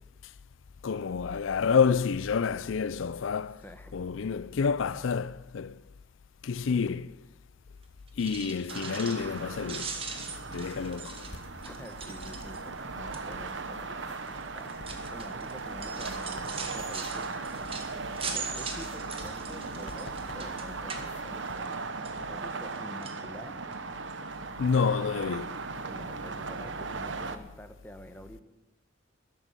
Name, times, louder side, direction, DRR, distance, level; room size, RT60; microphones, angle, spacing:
voice 1, 0.8-3.6 3.9-5.8 6.4-7.1 8.2-9.9 10.5-11.3 24.6-25.6, left 5 dB, 85° left, 0.5 m, -28 dB
voice 2, 3.6-4.0 6.8-6.9 11.6-17.3 18.3-23.6 25.9-28.4, equal, 10° left, 1.1 m, -48 dB
sound 1, 8.1-9.4 9.6-12.8 13.1-13.5 14.2-21.7 22.0-22.8 23.0-23.2 23.7-23.8 24.1-24.2, right 5 dB, 30° right, 1.9 m, -41 dB
sound 2, 8.7-27.4, right 4 dB, 70° right, 1.1 m, -38 dB
sound 3, 9.0-21.5, left 2 dB, 60° left, 1.4 m, -51 dB
13.5 x 11.5 x 8.2 m
head